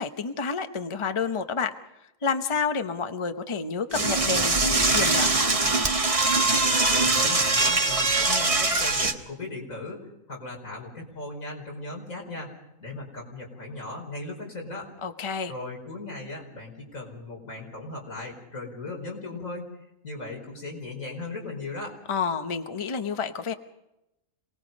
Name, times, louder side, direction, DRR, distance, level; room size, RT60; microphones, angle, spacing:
voice 1, 0.0-1.7 2.2-5.3 15.0-15.5 22.1-23.5, left 5 dB, 25° left, 8 dB, 0.9 m, -29 dB
Door / Toilet flush, 3.9-9.1, right 3 dB, 25° right, 1.3 m, -22 dB
voice 2, 6.4-10.0 10.3-12.5 12.8-14.9 15.5-19.8 20.0-21.9, left 2 dB, 90° left, 0 dB, 5.3 m, -38 dB
27.0 x 19.5 x 5.3 m, 0.89 s
omnidirectional pair, 1.4 m